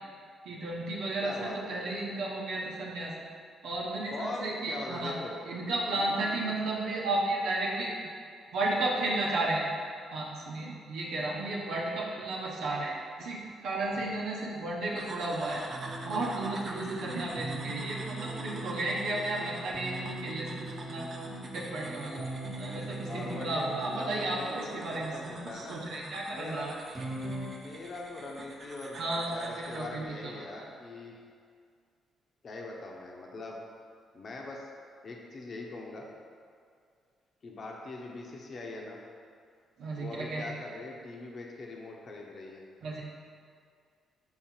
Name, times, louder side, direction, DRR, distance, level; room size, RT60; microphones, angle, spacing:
voice 1, 0.4-3.1 3.6-5.2 5.4-8.0 8.5-9.6 10.1-15.6 16.0-21.0 21.4-22.3 22.6-26.7 29.0-30.7 39.8-40.5 42.8-43.0, right 2 dB, 80° right, -4 dB, 1.0 m, -33 dB
voice 2, 1.2-1.9 4.1-5.3 5.9-6.5 23.1-25.8 26.3-26.7 27.6-31.2 32.4-33.6 34.1-34.7 35.0-36.1 37.4-39.0 39.9-42.6, left 2 dB, 50° left, -1 dB, 1.0 m, -42 dB
sound 1, 15.0-29.9, right 2 dB, 45° right, 0.8 m, -47 dB
sound 2, 15.7-24.5 26.9-27.5, right 2 dB, 25° right, 1.3 m, -40 dB
5.8 x 4.2 x 4.5 m, 2.2 s
cardioid pair, 90°, 0 cm